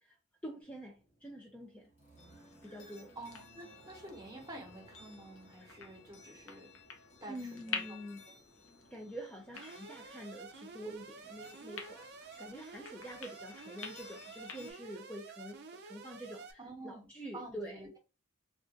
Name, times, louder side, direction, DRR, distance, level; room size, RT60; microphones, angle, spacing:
voice 1, 0.4-1.9 2.6-3.2 7.3-8.2 8.9-17.8, equal, 5° left, 0.4 m, -46 dB
sound 1, 0.6-9.2, right 1 dB, 35° left, 1.1 m, -62 dB
sound 2, 2.2-14.7, left 6 dB, 75° left, 0.7 m, -49 dB
voice 2, 3.2-6.7 7.2-8.0 8.2-8.4 16.6-17.1 17.3-18.0, right 1 dB, 20° right, 1.0 m, -49 dB
Alarm, 9.5-16.5, right 4 dB, 55° right, 0.5 m, -51 dB
2.4 x 2.4 x 3.8 m
head